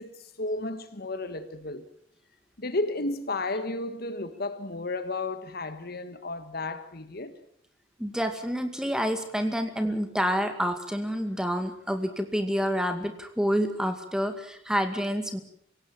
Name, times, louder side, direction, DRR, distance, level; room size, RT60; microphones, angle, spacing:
voice 1, 0.0-1.8 2.6-7.3, left 2 dB, 55° left, 1.5 m, -33 dB
voice 2, 8.0-15.4, equal, 5° right, 2.2 m, -28 dB
26.0 x 17.0 x 7.6 m
head